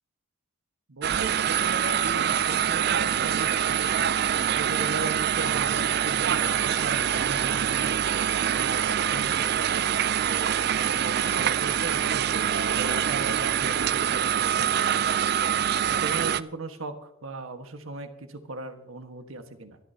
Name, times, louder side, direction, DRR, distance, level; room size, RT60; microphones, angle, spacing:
voice 1, 0.9-8.0 8.6-9.8 10.2-15.3 15.9-19.8, right 2 dB, 75° right, 7 dB, 1.4 m, -38 dB
sound 1, 1.0-16.4, right 9 dB, 50° right, 0.4 m, -25 dB
24.5 x 12.5 x 2.8 m, 0.80 s
head